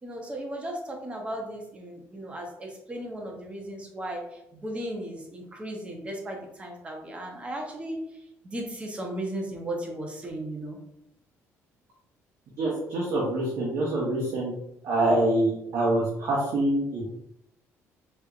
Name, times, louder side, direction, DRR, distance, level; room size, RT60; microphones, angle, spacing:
voice 1, 0.0-8.0 8.4-10.8, right 1 dB, 20° right, 1 dB, 0.7 m, -36 dB
voice 2, 12.6-14.5 14.8-17.0, right 1 dB, 60° right, -5 dB, 0.9 m, -25 dB
3.4 x 2.9 x 2.4 m, 0.81 s
cardioid pair, 135°, 6 cm